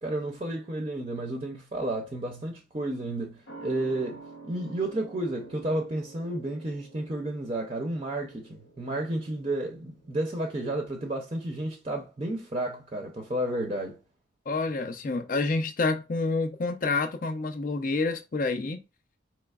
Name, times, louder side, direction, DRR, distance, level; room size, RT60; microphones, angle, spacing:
voice 1, 0.0-14.0, right 1 dB, 30° right, 0.5 m, -32 dB
sound 1, 3.5-10.5 10.8-10.9, right 3 dB, 70° left, 0.8 m, -49 dB
voice 2, 14.5-18.8, left 3 dB, 45° left, 0.5 m, -28 dB
4.3 x 3.0 x 2.3 m
head